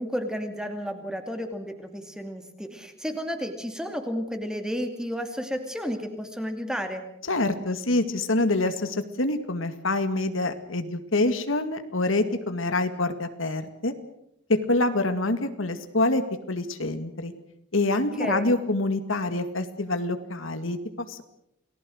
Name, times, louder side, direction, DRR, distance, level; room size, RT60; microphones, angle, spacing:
voice 1, 0.0-7.0 17.9-18.6, equal, 5° right, 6 dB, 2.4 m, -32 dB
voice 2, 7.3-13.9 14.5-16.2 16.5-17.3 17.7-21.2, left 2 dB, 85° left, 9 dB, 2.1 m, -26 dB
29.0 x 19.0 x 6.5 m, 0.78 s
head